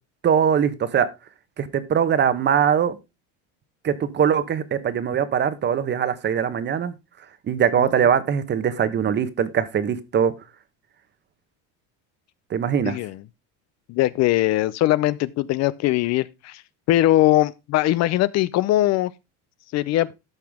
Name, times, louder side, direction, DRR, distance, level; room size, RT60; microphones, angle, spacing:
voice 1, 0.2-1.1 1.6-3.0 3.8-6.9 7.5-10.3 12.5-13.0, right 8 dB, 30° right, 1.1 m, -21 dB
voice 2, 12.8-13.2 13.9-16.6 16.9-19.1 19.7-20.1, left 15 dB, 50° left, 0.6 m, -21 dB
13.5 x 5.9 x 3.6 m
cardioid pair, 130°, 34 cm